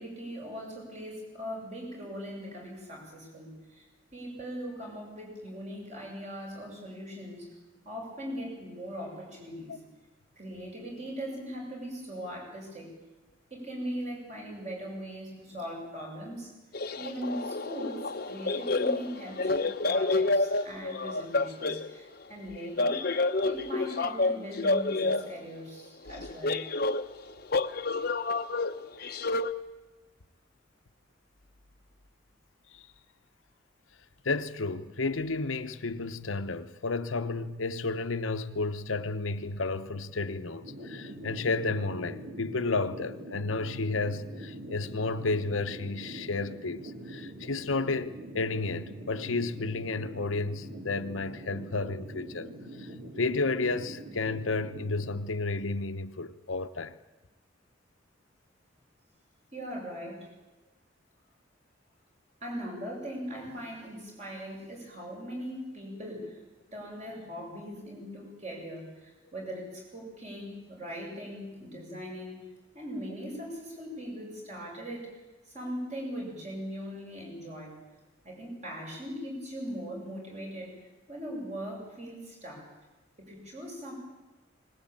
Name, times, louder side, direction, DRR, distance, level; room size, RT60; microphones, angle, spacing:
voice 1, 0.0-3.8 4.1-7.5 7.8-9.8 10.4-12.9 13.5-16.5 17.0-23.1 23.4-26.6 59.5-60.3 62.4-66.4 66.7-72.4 72.7-75.1 75.5-77.8 78.2-80.8 81.1-82.7 83.2-83.9, equal, 35° right, 7.8 m, -40 dB
sound 1, 16.7-21.9 22.8-25.3 26.1-29.5, left 3 dB, 50° left, 0.8 m, -29 dB
voice 2, 34.2-52.5 52.8-52.9 53.2-57.0, left 3 dB, 80° left, 0.9 m, -32 dB
sound 2, 40.6-55.0, right 1 dB, 65° right, 5.1 m, -44 dB
20.5 x 19.5 x 8.9 m
head